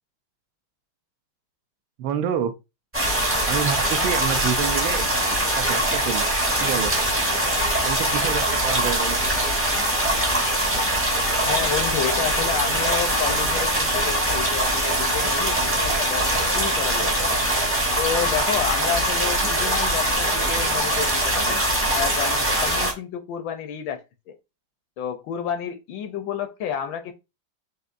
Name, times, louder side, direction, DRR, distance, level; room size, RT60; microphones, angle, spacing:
voice 1, 2.0-2.5 3.5-5.1 5.6-6.3 6.6-6.9 7.9-9.3, right 8 dB, 75° right, 1.3 m, -27 dB
sound 1, 2.9-22.9, right 1 dB, 15° right, 0.4 m, -22 dB
voice 2, 11.4-17.4 18.0-21.6 21.9-24.4 25.0-27.1, left 8 dB, 75° left, 1.2 m, -30 dB
6.4 x 2.6 x 2.5 m
omnidirectional pair, 2.3 m